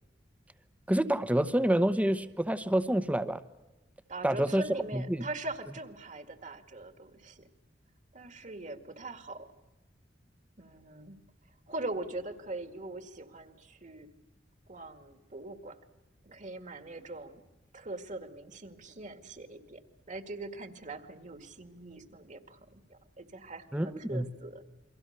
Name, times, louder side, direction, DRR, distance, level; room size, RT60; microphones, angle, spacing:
voice 1, 0.9-3.4 4.2-4.6 4.9-5.3 23.7-24.3, right 1 dB, 10° right, 12 dB, 0.9 m, -27 dB
voice 2, 4.1-7.5 8.1-9.5 10.6-11.2 11.7-14.1 14.7-15.8 16.3-17.4 17.7-19.8 20.1-24.6, right 2 dB, 45° right, 9 dB, 2.0 m, -42 dB
29.5 x 23.5 x 6.7 m, 1.1 s
head